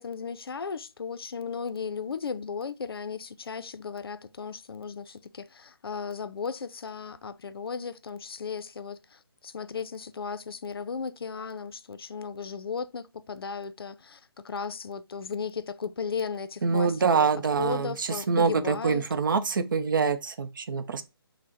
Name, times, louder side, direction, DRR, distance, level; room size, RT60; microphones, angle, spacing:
voice 1, 0.0-17.3 17.6-19.0, left 5 dB, 70° left, 0.4 m, -35 dB
voice 2, 16.6-21.0, right 5 dB, 55° right, 0.5 m, -25 dB
5.3 x 2.1 x 2.8 m
figure-of-eight pair, 155°, 13 cm